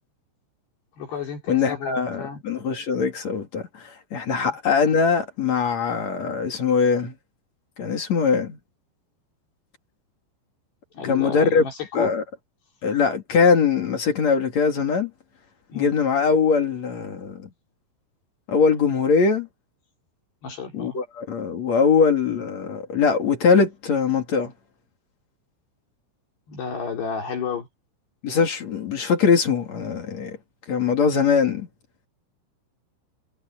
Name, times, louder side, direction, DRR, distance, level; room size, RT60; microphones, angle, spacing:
voice 1, 1.0-2.4 4.3-4.5 10.9-12.1 15.7-15.9 20.4-21.0 26.5-27.7, left 6 dB, 60° left, 5.6 m, -32 dB
voice 2, 1.5-7.1 7.8-8.6 11.0-11.7 11.9-12.2 12.8-15.1 15.7-17.4 18.5-19.5 20.7-24.5 28.2-30.4 30.7-31.7, left 5 dB, 45° left, 3.0 m, -21 dB
omnidirectional pair, 5.5 m